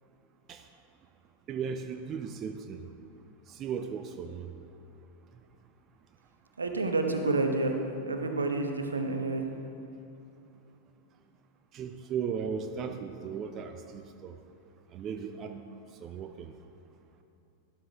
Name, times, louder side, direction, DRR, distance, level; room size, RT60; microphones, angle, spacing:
voice 1, 1.5-2.9 3.5-4.5 11.7-14.4 14.9-15.6 15.9-16.5, right 6 dB, 30° right, 7 dB, 0.6 m, -36 dB
voice 2, 6.6-9.5, right 2 dB, 75° right, 4 dB, 1.0 m, -29 dB
12.5 x 12.0 x 3.5 m, 2.8 s
figure-of-eight pair, 90°, 0 cm